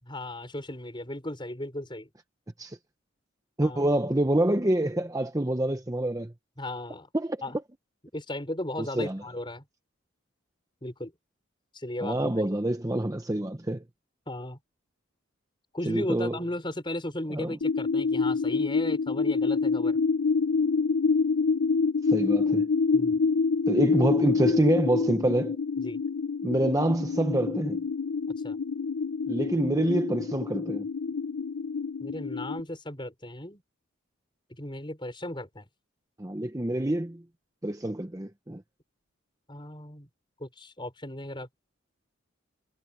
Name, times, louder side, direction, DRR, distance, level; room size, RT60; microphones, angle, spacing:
voice 1, 0.0-2.1 3.6-3.8 6.6-7.1 7.4-7.6 8.1-9.6 10.8-11.1 11.7-12.3 14.3-14.6 15.7-20.0 22.9-23.2 25.8-26.0 28.4-28.6 32.0-33.6 34.6-35.7 39.5-40.1 40.4-41.5, left 1 dB, 25° left, 5.9 m, -36 dB
voice 2, 3.6-6.3 7.1-7.4 8.8-9.2 12.0-13.8 15.9-16.4 17.3-17.6 22.1-22.7 23.7-25.6 26.4-27.8 29.3-30.8 36.2-37.2 37.6-38.6, right 1 dB, 15° right, 0.8 m, -26 dB
sound 1, 17.6-32.6, left 4 dB, 75° left, 0.7 m, -27 dB
head